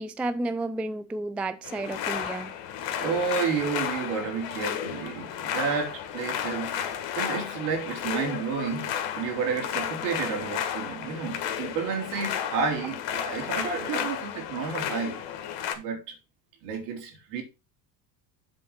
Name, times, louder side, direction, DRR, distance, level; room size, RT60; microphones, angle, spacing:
voice 1, 0.0-2.5, right 2 dB, 5° right, 0.3 m, -31 dB
sound 1, 1.6-15.7, left 9 dB, 65° left, 1.7 m, -33 dB
voice 2, 3.0-15.2 15.7-16.2 16.6-17.4, right 5 dB, 70° right, 3.1 m, -31 dB
7.8 x 3.9 x 5.7 m
supercardioid pair, 90°, 48 cm